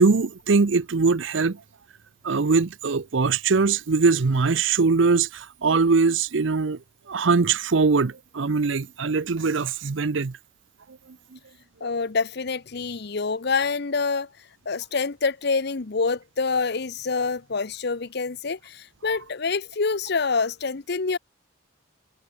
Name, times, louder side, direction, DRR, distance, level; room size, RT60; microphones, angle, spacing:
voice 1, 0.0-1.6 2.2-6.8 7.1-10.4, right 4 dB, 65° right, 0.7 m, -21 dB
voice 2, 11.8-14.3 14.7-21.2, left 4 dB, 55° left, 0.8 m, -26 dB
head